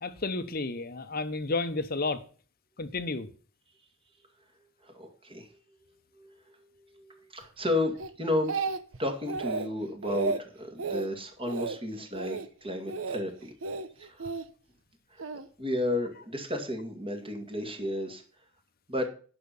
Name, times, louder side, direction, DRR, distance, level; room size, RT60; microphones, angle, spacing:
voice 1, 0.0-2.2 2.8-3.3, left 3 dB, 45° left, 0.9 m, -31 dB
voice 2, 4.8-5.6 6.2-8.6 9.0-13.5 14.0-14.3 15.1-15.2 15.6-18.2 18.9-19.1, left 1 dB, 25° right, 2.2 m, -33 dB
Speech, 8.0-9.0 9.3-9.7 10.0-10.4 10.8-11.1 11.5-11.8 12.1-12.5 12.9-13.2 13.6-14.4 15.2-15.5, right 4 dB, 75° right, 0.9 m, -33 dB
10.5 x 6.0 x 7.0 m
head